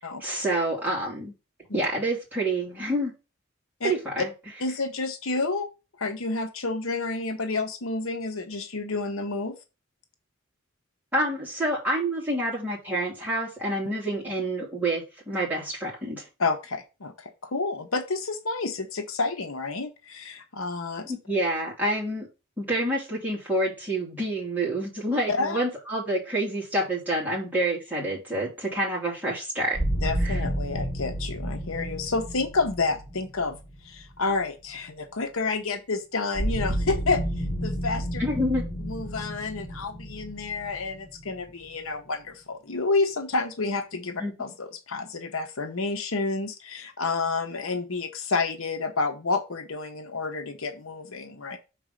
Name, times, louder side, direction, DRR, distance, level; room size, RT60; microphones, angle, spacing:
voice 1, 0.2-1.3 1.7-3.1 3.8-4.3 11.1-16.2 21.1-22.3 22.6-29.8 30.2-30.4 38.2-38.6 44.2-44.3, right 1 dB, 10° right, -5 dB, 2.9 m, -28 dB
voice 2, 4.6-5.7 6.0-9.5 16.4-21.1 25.3-25.6 30.0-33.6 33.8-37.2 37.6-38.2 38.8-51.6, left 3 dB, 70° left, 7 dB, 0.9 m, -29 dB
sound 1, 29.7-34.7 36.3-42.0, equal, 35° left, 4.7 m, -31 dB
6.1 x 4.1 x 5.1 m, 0.29 s
head